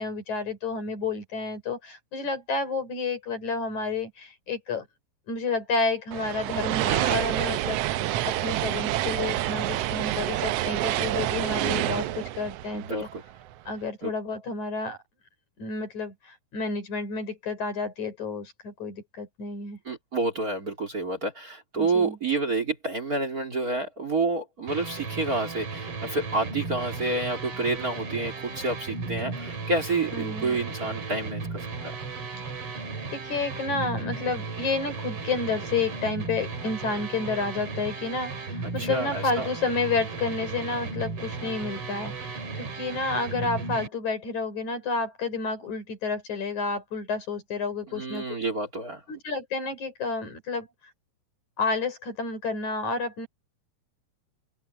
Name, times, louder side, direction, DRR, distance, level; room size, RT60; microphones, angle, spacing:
voice 1, 0.0-4.9 5.3-13.1 13.7-15.0 15.6-19.8 21.7-22.2 30.1-30.6 33.1-48.2 49.1-50.7 51.6-53.3, left 4 dB, 65° left, 7.0 m, -30 dB
sound 1, 6.1-13.5, right 14 dB, 85° right, 1.4 m, -28 dB
voice 2, 11.5-12.1 12.7-13.2 14.0-14.1 19.8-31.9 38.8-39.5 47.9-49.0, right 3 dB, 30° right, 3.1 m, -29 dB
sound 2, 24.7-43.9, right 4 dB, 45° right, 3.6 m, -35 dB
open air
omnidirectional pair, 3.6 m